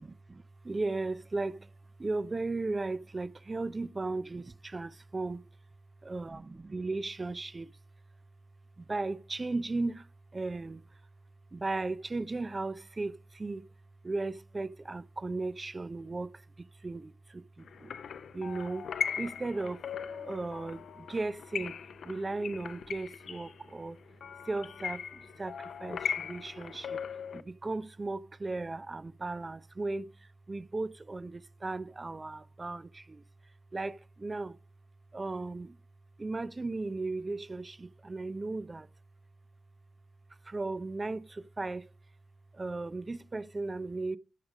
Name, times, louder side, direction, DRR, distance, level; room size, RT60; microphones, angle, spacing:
voice 1, 0.0-1.6 2.0-5.4 6.1-7.7 8.8-10.0 10.3-10.8 11.5-13.6 14.0-16.3 16.8-17.9 18.3-18.8 19.2-21.8 22.1-24.0 24.5-27.0 27.3-30.1 30.5-33.2 33.7-34.6 35.1-35.8 36.2-38.9 40.5-41.8 42.6-44.2, right 3 dB, 30° right, 0.4 m, -36 dB
sound 1, 17.7-27.4, left 7 dB, 75° left, 0.5 m, -39 dB
12.5 x 4.8 x 6.3 m
cardioid pair, 70°, 0 cm